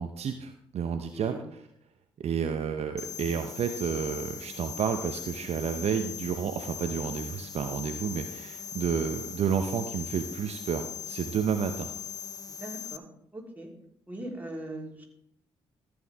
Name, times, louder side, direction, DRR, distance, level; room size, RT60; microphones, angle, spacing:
voice 1, 0.0-1.6 2.2-11.9, right 7 dB, 55° right, 7 dB, 0.8 m, -31 dB
sound 1, 3.0-13.0, left 7 dB, 30° left, 0.7 m, -40 dB
voice 2, 12.6-13.1 13.3-13.7 14.1-15.0, right 1 dB, 10° right, -1 dB, 3.6 m, -39 dB
14.0 x 8.2 x 3.6 m, 0.73 s
hypercardioid pair, 45°, 13 cm